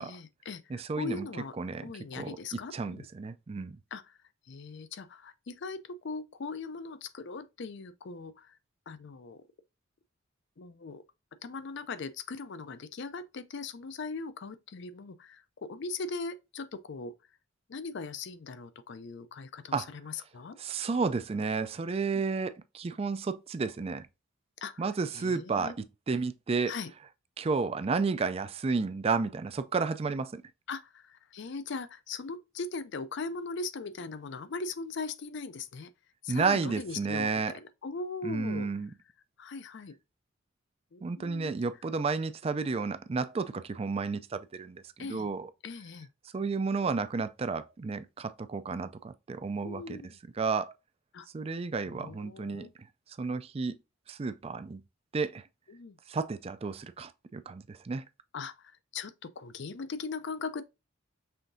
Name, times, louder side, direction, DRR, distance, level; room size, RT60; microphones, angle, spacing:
voice 1, 0.0-1.6 1.8-3.1 3.9-4.2 4.5-8.6 8.9-9.4 10.6-11.0 11.4-17.1 17.7-20.6 22.1-22.2 24.6-24.9 25.1-25.7 26.7-26.9 30.7-35.9 36.2-38.7 39.4-40.0 40.9-41.5 45.0-45.3 45.6-46.1 49.6-50.2 51.1-51.3 51.8-52.7 55.7-56.0 58.3-60.6, left 4 dB, 60° left, 0.5 m, -40 dB
voice 2, 0.7-1.3 1.6-3.8 19.7-19.9 20.6-24.1 24.8-26.7 27.4-30.4 36.3-37.5 38.2-38.9 41.0-45.5 46.3-50.0 50.4-50.7 51.3-52.7 53.2-53.7 54.1-54.8 55.1-55.4 56.1-58.0, right 4 dB, 30° right, 0.3 m, -32 dB
5.7 x 3.4 x 2.6 m
head